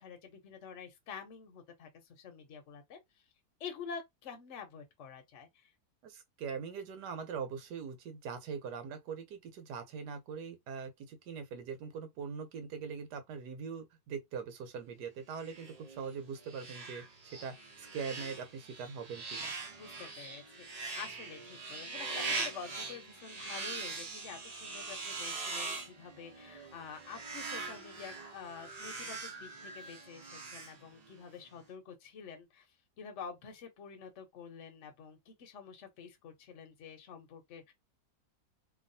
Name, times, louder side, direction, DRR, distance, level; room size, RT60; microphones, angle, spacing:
voice 1, 0.0-3.0 3.6-5.7 19.8-32.7 33.0-37.7, left 6 dB, 55° left, 1.0 m, -48 dB
voice 2, 6.0-17.0 17.4-19.5, right 6 dB, 85° right, 1.3 m, -42 dB
sound 1, 15.3-31.3, right 3 dB, 55° right, 0.4 m, -42 dB
3.0 x 2.3 x 2.6 m
omnidirectional pair, 1.8 m